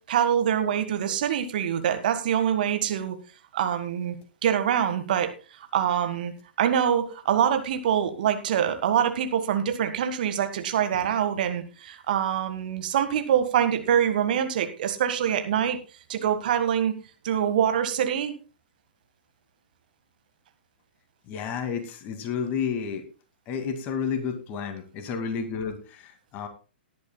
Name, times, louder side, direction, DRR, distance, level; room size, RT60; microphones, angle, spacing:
voice 1, 0.1-3.2 3.5-4.2 4.4-5.3 5.6-6.3 6.6-15.8 16.1-16.9 17.2-18.3, right 9 dB, 50° right, 9 dB, 1.7 m, -25 dB
voice 2, 21.3-23.0 23.5-26.5, left 6 dB, 30° left, 7 dB, 2.3 m, -31 dB
19.0 x 10.5 x 2.3 m, 0.33 s
figure-of-eight pair, 115°, 6 cm